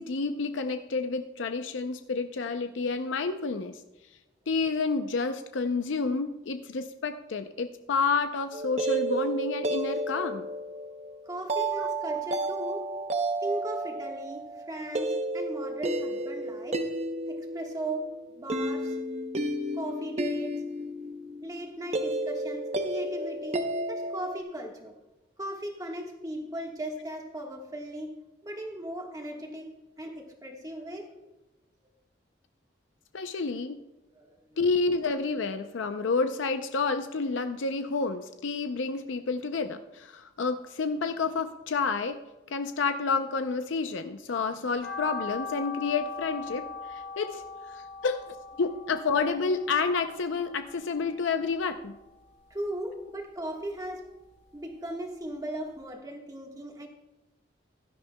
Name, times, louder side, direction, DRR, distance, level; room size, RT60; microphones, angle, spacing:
voice 1, 0.0-3.8 4.5-10.5 33.1-33.8 34.6-42.2 42.5-47.4 47.7-52.0, left 4 dB, 80° left, 8 dB, 0.5 m, -29 dB
sound 1, 8.5-24.4, right 1 dB, 35° right, 0.7 m, -32 dB
voice 2, 11.2-12.9 13.4-16.8 17.3-18.1 18.3-19.0 19.7-20.5 21.4-23.6 23.9-24.9 25.4-28.1 28.4-29.7 30.0-31.1 34.1-34.6 52.5-54.0 54.5-56.9, right 1 dB, 20° right, 1 dB, 1.4 m, -37 dB
sound 2, 44.8-51.1 51.5-52.6 53.0-54.4 54.8-54.9 55.3-55.4 55.7-55.8, left 5 dB, 45° left, 3.2 m, -41 dB
16.0 x 11.5 x 2.2 m, 1.0 s
head